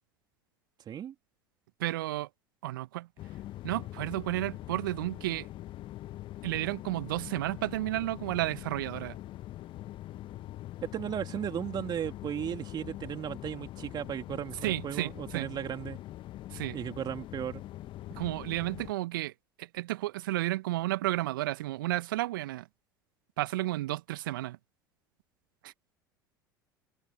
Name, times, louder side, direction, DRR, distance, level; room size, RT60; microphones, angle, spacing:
voice 1, 1.8-2.3 2.6-3.1 3.6-5.5 6.4-9.2 14.6-15.5 16.5-16.8 18.1-19.3 19.6-22.7 23.4-24.6 25.6-25.7, right 17 dB, 70° right, 1.5 m, -32 dB
sound 1, 3.2-18.9, left 15 dB, 45° left, 1.3 m, -43 dB
voice 2, 10.8-16.0 16.7-17.6, right 10 dB, 40° right, 3.1 m, -35 dB
figure-of-eight pair, 70°, 12 cm